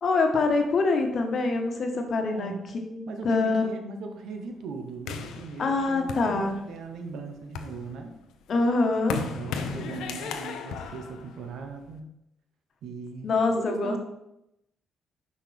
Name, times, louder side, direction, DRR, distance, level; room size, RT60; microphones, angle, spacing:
voice 1, 0.0-2.5 2.9-3.7 5.6-6.5 8.5-9.2 13.2-14.0, left 3 dB, 55° left, 4 dB, 1.2 m, -25 dB
voice 2, 2.2-2.7 3.1-8.2 9.1-12.1 12.8-14.0, right 4 dB, 75° right, 5 dB, 0.9 m, -39 dB
sound 1, 5.1-6.9 7.4-12.0, left 6 dB, 80° left, 0.6 m, -36 dB
6.0 x 5.2 x 3.4 m, 0.85 s
supercardioid pair, 55°, 0 cm